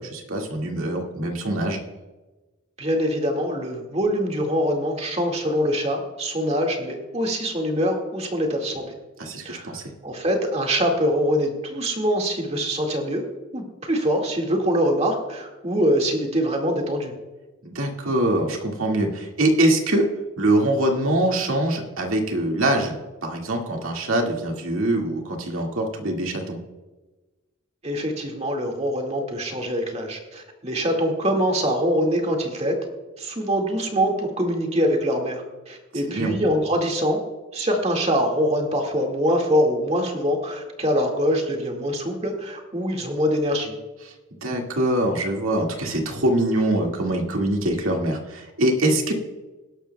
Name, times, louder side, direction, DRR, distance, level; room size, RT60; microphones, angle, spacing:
voice 1, 0.0-1.8 9.2-9.8 17.7-20.1 20.4-26.6 36.0-36.3 44.1-44.2 44.4-49.1, right 1 dB, 80° right, 1 dB, 2.0 m, -23 dB
voice 2, 2.8-8.8 9.5-9.8 10.0-13.2 13.5-17.1 27.8-32.7 33.2-37.2 37.5-43.8, equal, 30° right, 2 dB, 1.9 m, -24 dB
19.0 x 11.5 x 2.3 m, 1.2 s
head